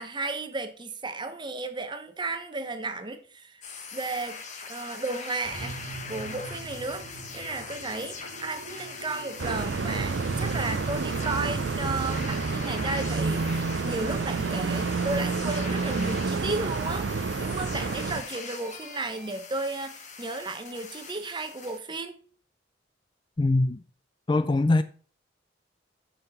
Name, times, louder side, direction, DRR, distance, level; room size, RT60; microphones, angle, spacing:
voice 1, 0.0-3.6 3.9-5.8 6.1-7.1 7.3-17.1 17.4-22.2, right 3 dB, 25° right, 1.0 m, -34 dB
sound 1, 3.6-21.8, left 4 dB, 40° left, 1.5 m, -41 dB
sound 2, 5.4-15.4, right 2 dB, 90° right, 1.9 m, -44 dB
sound 3, 9.4-18.2, right 4 dB, 65° right, 0.5 m, -29 dB
voice 2, 23.4-23.8 24.3-24.8, left 2 dB, 25° left, 0.4 m, -22 dB
6.6 x 5.8 x 6.9 m
head